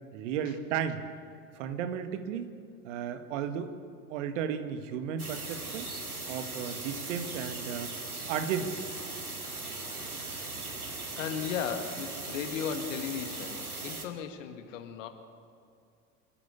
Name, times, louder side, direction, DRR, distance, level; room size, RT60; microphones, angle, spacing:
voice 1, 0.1-1.0 1.6-2.5 2.8-3.8 4.1-5.9 6.3-7.9 8.3-8.9, right 8 dB, 55° right, 9 dB, 1.9 m, -34 dB
sound 1, 5.2-14.0, right 3 dB, 90° right, 1.9 m, -39 dB
voice 2, 11.2-15.1, left 7 dB, 60° left, 7 dB, 1.9 m, -36 dB
27.5 x 12.0 x 8.3 m, 2.5 s
figure-of-eight pair, 75°, 43 cm